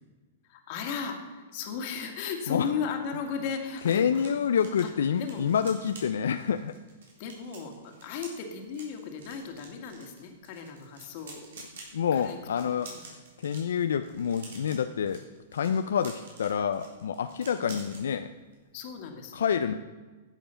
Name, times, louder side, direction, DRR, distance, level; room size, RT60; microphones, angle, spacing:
voice 1, 0.4-4.3 4.8-4.9 5.2-5.4 7.2-11.5 12.1-13.0 17.5-17.8 18.7-19.8, left 6 dB, 45° left, 4 dB, 1.9 m, -36 dB
sound 1, 2.8-18.0 18.4-18.6 18.9-19.2, right 3 dB, 75° right, 3.8 m, -50 dB
voice 2, 3.8-6.7 11.9-15.2 15.5-18.3 19.3-19.7, left 7 dB, 85° left, 9 dB, 0.4 m, -28 dB
11.5 x 7.9 x 5.7 m, 1.3 s
hypercardioid pair, 145°, 0 cm